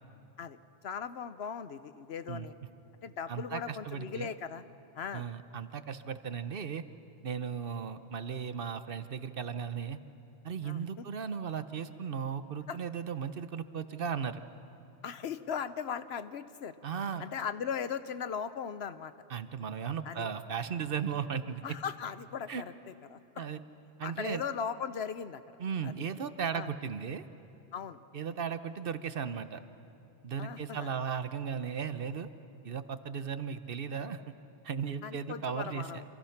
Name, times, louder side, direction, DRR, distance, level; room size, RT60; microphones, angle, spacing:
voice 1, 0.8-2.5 3.0-4.6 4.9-5.3 10.6-11.0 12.7-12.8 15.0-16.7 17.2-19.1 20.0-20.3 21.6-22.7 23.1-23.5 24.0-25.9 26.5-26.7 27.7-28.0 30.4-30.9 35.0-36.0, left 7 dB, 70° left, 12 dB, 1.1 m, -38 dB
voice 2, 3.3-4.3 5.1-6.8 7.2-10.0 10.4-14.4 16.8-17.3 19.3-21.8 22.5-22.6 23.4-23.6 24.0-24.4 25.6-27.2 28.1-29.6 30.2-32.3 32.6-34.3 34.6-36.0, right 7 dB, 60° right, 11 dB, 1.0 m, -36 dB
28.5 x 26.0 x 5.9 m, 2.8 s
omnidirectional pair, 1.1 m